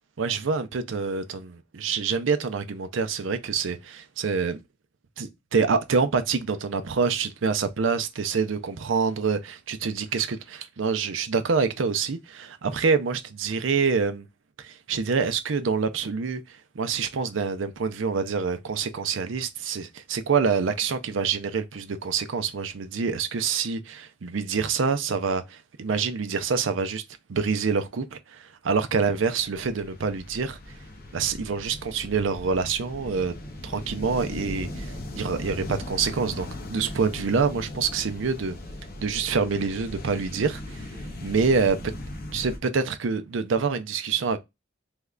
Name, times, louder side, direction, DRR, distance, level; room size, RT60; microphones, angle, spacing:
voice 1, 0.2-4.6 5.2-14.3 14.6-27.0 27.3-30.6 31.1-33.3 33.6-38.6 39.0-40.9 41.2-41.8 42.3-44.4, right 5 dB, 85° right, 0.5 m, -26 dB
sound 1, 29.1-42.6, left 1 dB, 50° left, 0.8 m, -38 dB
3.5 x 3.2 x 2.4 m
head